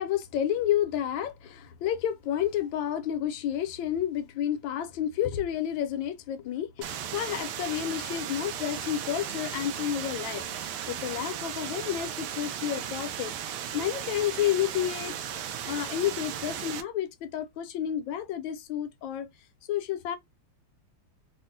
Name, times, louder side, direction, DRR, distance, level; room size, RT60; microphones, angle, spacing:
voice 1, 0.0-15.1 15.6-19.3 19.7-20.2, left 11 dB, 75° left, 1.3 m, -30 dB
sound 1, 6.8-16.8, right 9 dB, 90° right, 1.5 m, -36 dB
4.1 x 2.1 x 2.6 m
omnidirectional pair, 2.3 m